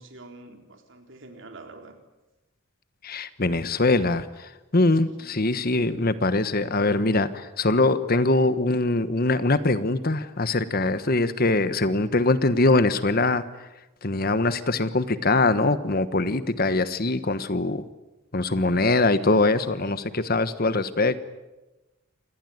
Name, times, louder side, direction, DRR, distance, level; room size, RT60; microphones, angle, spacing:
voice 1, 0.0-2.0 5.2-5.5, right 2 dB, 60° right, 5 dB, 4.1 m, -46 dB
voice 2, 3.0-4.2 4.7-7.3 7.6-13.4 14.0-17.8 18.3-21.2, left 2 dB, 45° left, 13 dB, 1.2 m, -22 dB
27.5 x 20.5 x 9.4 m, 1.1 s
head